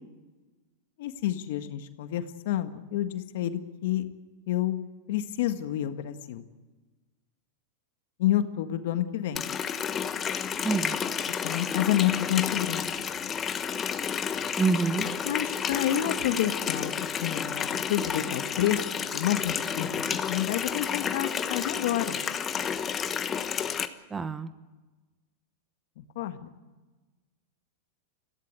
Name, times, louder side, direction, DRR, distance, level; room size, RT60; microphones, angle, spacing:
voice 1, 1.0-4.0 4.5-4.8 5.1-6.5 8.2-9.4 11.4-12.9 15.2-22.2 26.0-26.5, left 12 dB, 65° left, 8 dB, 1.7 m, -29 dB
Water tap faucet, 9.4-23.9, left 7 dB, 25° left, 1.2 m, -31 dB
voice 2, 10.6-11.0 14.6-15.1 24.1-24.5, right 4 dB, 15° right, 12 dB, 1.1 m, -26 dB
22.5 x 15.5 x 9.1 m, 1.2 s
hypercardioid pair, 120°, 0 cm